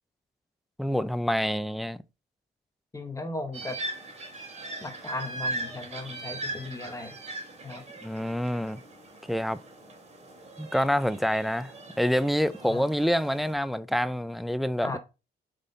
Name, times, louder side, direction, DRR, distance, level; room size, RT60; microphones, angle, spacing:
voice 1, 0.8-2.0 8.0-8.8 9.3-9.6 10.6-15.0, equal, ahead, 0.3 m, -27 dB
voice 2, 2.9-3.8 4.8-7.2 7.6-7.8 12.6-12.9 14.8-15.0, left 2 dB, 15° left, 0.9 m, -36 dB
sound 1, 3.5-13.5, right 2 dB, 35° right, 2.4 m, -40 dB
9.0 x 4.2 x 3.8 m
wide cardioid pair, 160°, 19 cm